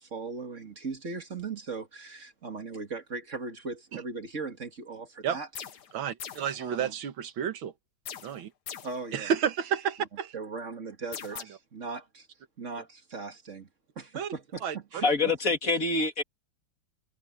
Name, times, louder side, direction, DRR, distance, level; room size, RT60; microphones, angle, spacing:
voice 1, 0.0-5.5 6.6-6.9 8.8-9.3 10.3-12.3 12.6-13.7 14.0-15.5, right 4 dB, 40° right, 2.2 m, -38 dB
sound 1, 5.5-5.9 6.2-6.6 8.1-9.0 11.1-11.4, left 8 dB, 60° left, 1.7 m, -41 dB
voice 2, 5.9-7.7 8.2-8.5 9.1-10.3 11.3-11.4 14.1-14.3 14.6-14.8, right 8 dB, 85° right, 2.1 m, -31 dB
voice 3, 15.0-16.2, left 3 dB, 45° left, 2.9 m, -25 dB
omnidirectional pair, 2.1 m